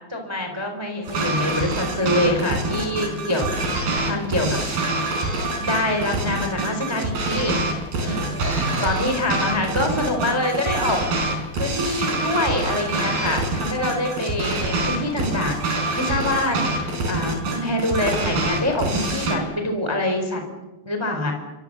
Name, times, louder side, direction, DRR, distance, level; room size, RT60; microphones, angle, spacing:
voice 1, 0.1-4.6 5.6-7.6 8.0-8.3 8.6-20.4 20.8-21.3, left 1 dB, 5° right, 4 dB, 3.9 m, -25 dB
sound 1, 1.0-19.4, right 2 dB, 90° right, 6.6 m, -25 dB
29.5 x 24.0 x 6.9 m, 1.1 s
omnidirectional pair, 4.1 m